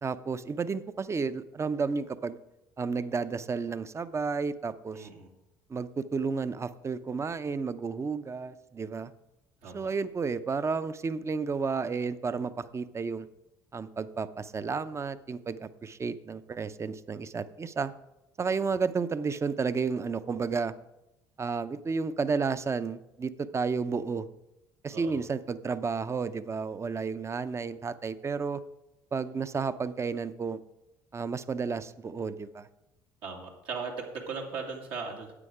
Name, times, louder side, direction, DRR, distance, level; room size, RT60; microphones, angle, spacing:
voice 1, 0.0-2.4 2.8-5.1 5.7-9.1 9.7-13.3 13.7-17.9 18.4-20.7 21.4-24.3 24.8-28.6 29.1-30.6 31.1-32.7, right 5 dB, 30° right, 14 dB, 0.6 m, -32 dB
voice 2, 4.9-5.3 9.6-9.9 24.9-25.2 33.2-35.3, right 5 dB, 75° right, 0 dB, 2.2 m, -38 dB
9.9 x 7.7 x 4.9 m, 0.91 s
supercardioid pair, 70°, 10 cm